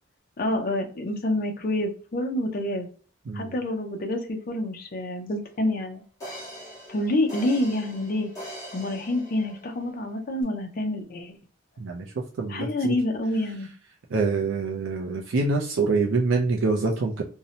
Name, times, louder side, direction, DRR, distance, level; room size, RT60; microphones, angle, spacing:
voice 1, 0.4-2.9 3.3-6.0 6.9-8.3 8.7-11.4 12.5-13.7, left 1 dB, 45° left, 3 dB, 0.4 m, -27 dB
sound 1, 5.5-5.6 6.2-9.9 10.4-10.5, equal, 15° left, 1.0 m, -42 dB
voice 2, 12.4-12.9 14.1-17.2, right 3 dB, 70° right, 1 dB, 0.4 m, -25 dB
2.6 x 2.0 x 2.7 m, 0.41 s
head